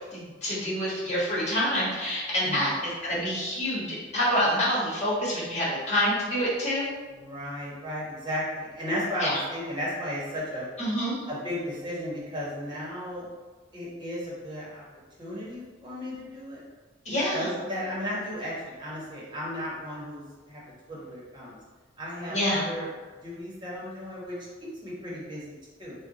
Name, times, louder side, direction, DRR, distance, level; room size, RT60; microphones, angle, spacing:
voice 1, 0.1-6.9 9.2-9.4 10.8-11.2 17.0-17.5 22.3-22.6, equal, 40° left, -7 dB, 1.4 m, -27 dB
voice 2, 2.4-2.8 7.1-10.6 11.3-13.3 13.7-14.8 15.2-16.6 17.3-20.6 20.9-21.6 22.0-22.9 23.2-25.9, equal, 25° right, -6 dB, 1.2 m, -34 dB
3.4 x 2.3 x 3.8 m, 1.3 s
head